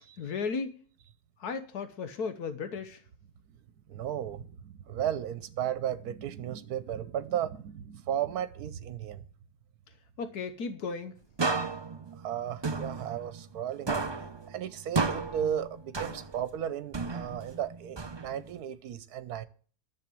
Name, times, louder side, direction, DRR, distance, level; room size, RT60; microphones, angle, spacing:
voice 1, 0.2-0.7 1.4-3.0 10.2-11.1, left 5 dB, 80° left, 1.5 m, -35 dB
voice 2, 3.9-9.2 12.2-14.0 14.5-19.5, right 10 dB, 75° right, 1.4 m, -35 dB
sound 1, 11.4-13.6 13.9-16.5 16.9-18.6, right 4 dB, 35° right, 0.4 m, -33 dB
10.5 x 7.5 x 7.6 m
omnidirectional pair, 1.6 m